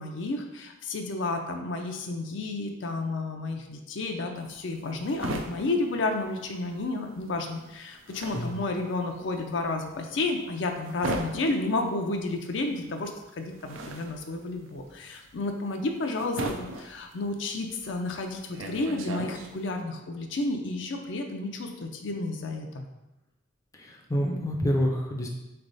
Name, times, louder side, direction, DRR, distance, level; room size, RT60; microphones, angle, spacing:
voice 1, 0.0-13.1 13.4-22.9, left 2 dB, 65° left, 4 dB, 0.5 m, -31 dB
sound 1, 4.4-6.9 7.2-19.8, right 1 dB, 85° right, 0.5 m, -38 dB
voice 2, 23.7-25.3, equal, 15° left, 0 dB, 0.5 m, -28 dB
3.9 x 3.3 x 4.0 m, 0.98 s
head